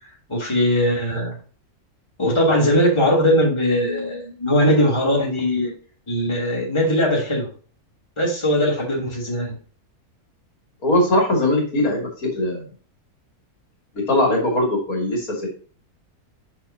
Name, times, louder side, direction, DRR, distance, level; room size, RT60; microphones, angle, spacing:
voice 1, 0.3-1.3 2.2-5.7 6.1-7.5 8.2-9.6, equal, 20° left, -3 dB, 2.8 m, -20 dB
voice 2, 10.8-12.6 13.9-15.5, left 1 dB, 65° left, -1 dB, 3.1 m, -20 dB
8.4 x 6.0 x 2.7 m, 0.40 s
omnidirectional pair, 1.6 m